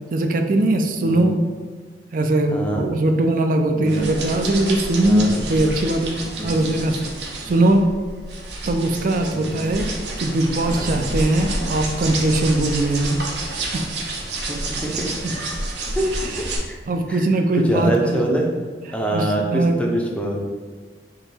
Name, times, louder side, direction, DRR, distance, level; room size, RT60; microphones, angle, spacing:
voice 1, 0.1-1.4 2.1-6.1 6.4-7.1 7.4-7.9 8.7-9.9 10.2-13.2 13.7-13.9 14.9-15.0 15.2-15.3 16.2-16.4 16.9-18.3 19.1-19.8, right 1 dB, 50° right, 5 dB, 0.4 m, -20 dB
voice 2, 2.5-2.9 3.7-4.0 5.0-5.3 6.4-6.5 9.3-9.5 10.7-10.9 14.5-14.6 14.8-14.9 16.0-16.1 16.4-16.8 17.6-18.5 18.9-20.4, right 1 dB, 5° left, -1 dB, 0.5 m, -24 dB
sound 1, 3.9-16.6, right 2 dB, 70° right, 0.8 m, -29 dB
3.8 x 2.9 x 4.2 m, 1.5 s
head